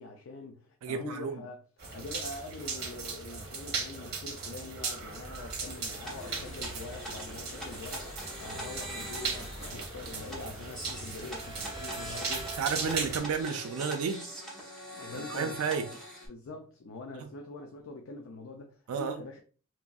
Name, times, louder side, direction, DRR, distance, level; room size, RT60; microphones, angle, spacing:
voice 1, 0.0-1.6 1.9-13.1 14.9-15.6 16.3-19.4, left 3 dB, 65° left, 0.4 m, -44 dB
voice 2, 0.8-1.4 12.6-14.3 15.3-15.9 17.2-17.3 18.9-19.2, right 6 dB, 85° right, 0.3 m, -32 dB
sound 1, 1.8-13.2, right 4 dB, 50° right, 0.8 m, -38 dB
sound 2, 5.0-13.4, equal, 80° left, 0.9 m, -50 dB
sound 3, 6.0-16.3, right 1 dB, 5° left, 0.8 m, -43 dB
2.9 x 2.6 x 2.2 m
head